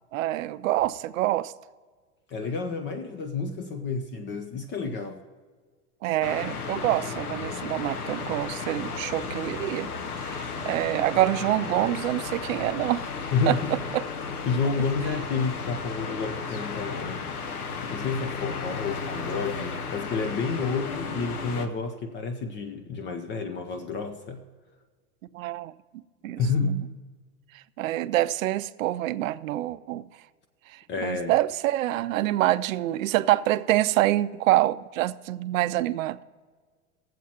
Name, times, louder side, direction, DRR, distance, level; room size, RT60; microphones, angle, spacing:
voice 1, 0.1-1.5 6.0-9.9 10.2-13.0 13.5-14.0 25.3-25.7 26.2-26.8 27.5-30.1 30.7-36.2, right 15 dB, 65° right, 0.5 m, -26 dB
voice 2, 2.3-5.2 13.3-13.8 14.5-17.3 17.9-24.4 26.2-26.9 30.9-31.3, left 4 dB, 25° left, 0.6 m, -30 dB
sound 1, 6.2-21.7, left 5 dB, 90° left, 1.0 m, -34 dB
20.0 x 7.6 x 2.9 m
hypercardioid pair, 110°, 44 cm